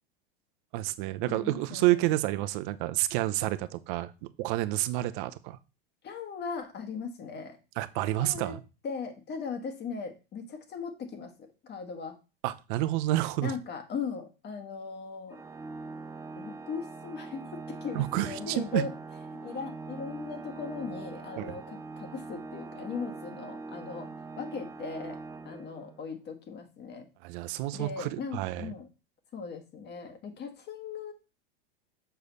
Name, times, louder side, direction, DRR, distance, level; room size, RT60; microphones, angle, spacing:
voice 1, 0.7-5.6 7.8-8.6 12.4-13.5 17.9-18.8 21.4-21.5 27.2-28.7, right 16 dB, 60° right, 13 dB, 0.7 m, -29 dB
voice 2, 1.3-2.1 6.0-7.6 8.2-8.6 8.8-12.2 13.4-15.4 16.3-18.9 19.3-24.1 24.4-25.2 25.4-27.1 27.7-28.9 29.3-31.1, left 5 dB, 35° left, 7 dB, 1.6 m, -38 dB
Organ, 15.3-26.1, right 3 dB, 10° right, 0.5 m, -42 dB
6.9 x 4.9 x 4.1 m, 0.30 s
hypercardioid pair, 100°, 30 cm